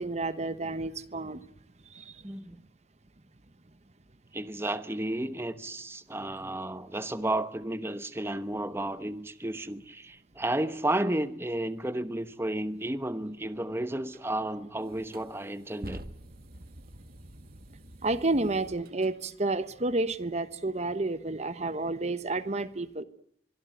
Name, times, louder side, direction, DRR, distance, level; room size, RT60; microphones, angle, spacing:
voice 1, 0.0-1.4 1.9-2.2 15.8-16.0 18.0-23.0, right 2 dB, 40° right, 1.1 m, -30 dB
voice 2, 2.2-2.6 4.3-16.0, right 1 dB, 15° right, 1.0 m, -32 dB
sound 1, 14.1-14.3 14.9-19.1, right 1 dB, 55° right, 1.7 m, -47 dB
24.5 x 24.0 x 9.4 m
head